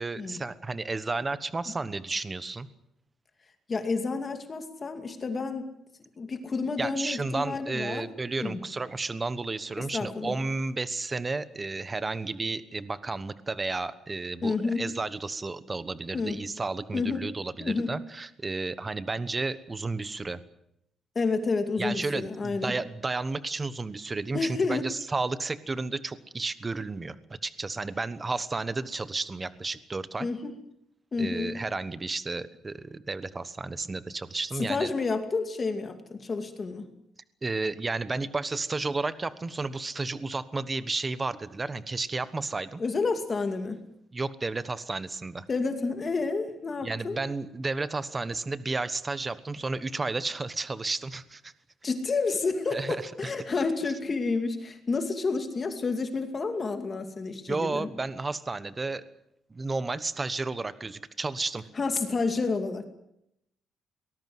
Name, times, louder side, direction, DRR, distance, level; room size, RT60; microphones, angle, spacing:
voice 1, 0.0-2.7 6.8-20.4 21.8-30.3 31.2-34.9 37.4-42.8 44.1-45.4 46.8-51.5 52.7-53.3 57.5-59.0 59.5-61.6, right 3 dB, 20° right, 14 dB, 1.2 m, -32 dB
voice 2, 3.7-5.7 6.2-8.1 8.4-8.6 9.8-10.3 14.4-14.8 16.1-16.4 16.9-17.3 17.6-17.9 21.1-22.7 24.3-24.8 30.2-30.5 31.1-31.5 34.5-36.9 42.8-43.8 45.5-47.2 51.8-57.9 61.7-62.9, left 4 dB, 30° left, 6 dB, 2.4 m, -30 dB
23.0 x 20.0 x 7.9 m, 0.79 s
cardioid pair, 150°, 0 cm